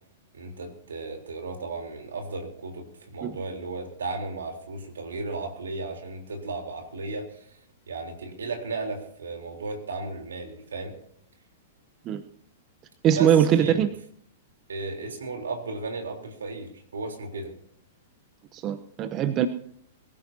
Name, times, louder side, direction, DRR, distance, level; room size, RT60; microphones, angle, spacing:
voice 1, 0.3-7.6 7.9-11.0 13.1-13.9 14.7-17.5, right 3 dB, 80° right, 3 dB, 3.7 m, -35 dB
voice 2, 13.0-13.9 18.5-19.5, right 9 dB, 35° right, 9 dB, 0.9 m, -22 dB
22.5 x 15.0 x 2.8 m, 0.67 s
hypercardioid pair, 110°, 0 cm